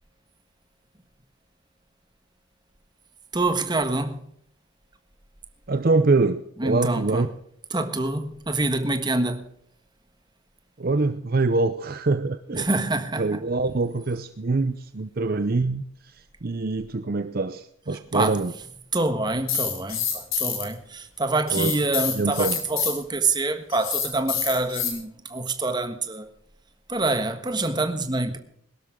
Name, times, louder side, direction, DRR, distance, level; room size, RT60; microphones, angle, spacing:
voice 1, 3.3-4.2 6.6-7.3 7.7-9.4 12.5-13.4 18.1-18.4 18.9-26.3 26.9-28.4, right 2 dB, 20° right, 1.4 m, -26 dB
voice 2, 5.7-7.3 10.8-12.7 13.2-18.5 21.5-21.7 22.1-22.6, right 3 dB, 45° right, 0.6 m, -24 dB
sound 1, 19.5-20.6 21.5-22.9 23.7-24.9, left 8 dB, 90° left, 4.3 m, -27 dB
21.5 x 12.5 x 3.7 m
head